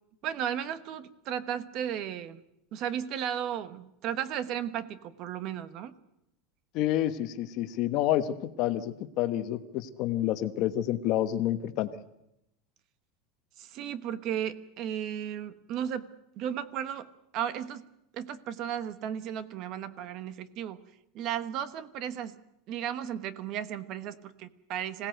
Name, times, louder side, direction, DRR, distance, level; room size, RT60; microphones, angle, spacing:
voice 1, 0.2-2.4 2.7-5.9 13.6-16.1 16.4-17.9 18.1-20.8 21.1-22.4 22.7-25.1, right 9 dB, 40° right, 13 dB, 1.1 m, -35 dB
voice 2, 6.7-11.9, left 13 dB, 40° left, 10 dB, 1.2 m, -29 dB
26.0 x 17.5 x 8.0 m, 0.82 s
supercardioid pair, 170°, 0 cm